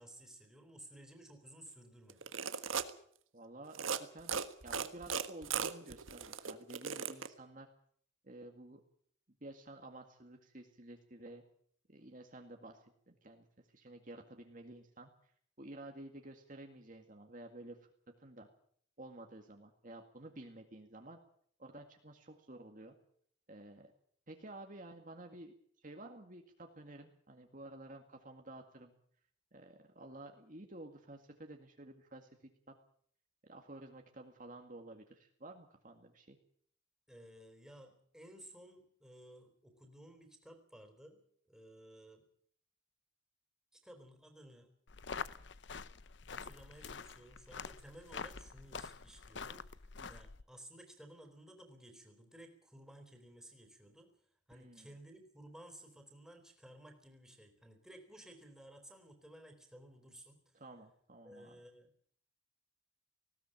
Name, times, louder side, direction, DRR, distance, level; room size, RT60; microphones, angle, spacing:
voice 1, 0.0-2.3 37.1-41.2 41.5-42.2 43.7-44.7 46.3-54.1 54.5-60.6 61.2-61.9, right 1 dB, 5° right, 4 dB, 3.9 m, -56 dB
sound 1, 2.1-2.9 3.7-4.0 4.3-7.3, right 6 dB, 80° right, 1.5 m, -37 dB
voice 2, 3.3-4.3 4.6-7.7 8.2-8.8 9.4-11.4 11.9-15.1 15.6-17.8 18.2-18.5 19.0-21.2 21.6-23.0 23.5-23.9 24.3-28.9 29.5-32.7 33.4-36.4 50.0-50.2 54.5-54.9 60.5-61.6, right 1 dB, 40° right, 4 dB, 2.0 m, -52 dB
sound 2, 44.9-50.4, left 5 dB, 60° left, 0.8 m, -46 dB
19.5 x 17.0 x 8.9 m, 0.62 s
head